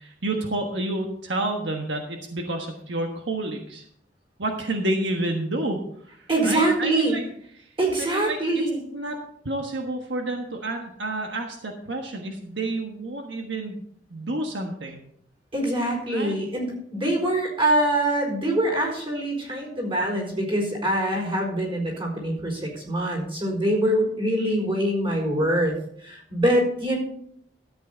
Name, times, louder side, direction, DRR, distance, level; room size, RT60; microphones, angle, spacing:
voice 1, 0.0-3.9 4.4-7.2 7.5-8.4 8.9-9.2 9.4-13.8 14.1-15.0 16.1-16.3, right 2 dB, 75° right, 2 dB, 1.4 m, -30 dB
voice 2, 6.3-7.1 7.8-8.8 15.5-25.7 26.0-27.0, right 1 dB, 30° right, 0 dB, 4.5 m, -24 dB
13.5 x 8.5 x 4.0 m, 0.66 s
head